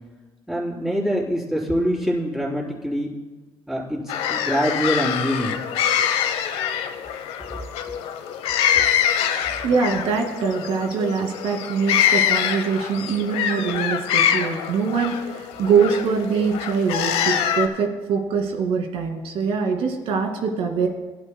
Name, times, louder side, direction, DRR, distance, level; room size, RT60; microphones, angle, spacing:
voice 1, 0.5-3.1 3.7-5.6 8.7-8.8, equal, 5° right, -5 dB, 3.9 m, -24 dB
sound 1, 4.1-17.7, left 9 dB, 80° left, 0.9 m, -24 dB
voice 2, 9.6-20.9, right 5 dB, 70° right, 3 dB, 2.2 m, -23 dB
22.0 x 11.5 x 2.2 m, 1.3 s
cardioid pair, 90°, 10 cm